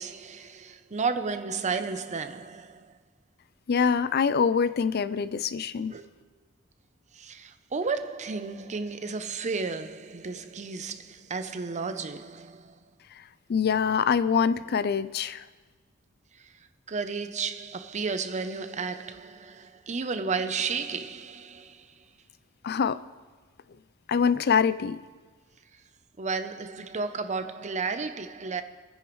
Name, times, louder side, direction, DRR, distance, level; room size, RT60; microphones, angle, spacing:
voice 1, 0.0-3.0 5.9-6.1 7.1-12.8 16.3-22.0 25.7-25.8 26.2-28.6, right 4 dB, 35° right, 0.6 m, -33 dB
voice 2, 3.7-5.9 13.5-15.4 22.6-23.0 24.1-25.0, left 6 dB, 50° left, 0.4 m, -24 dB
23.5 x 10.0 x 3.1 m
head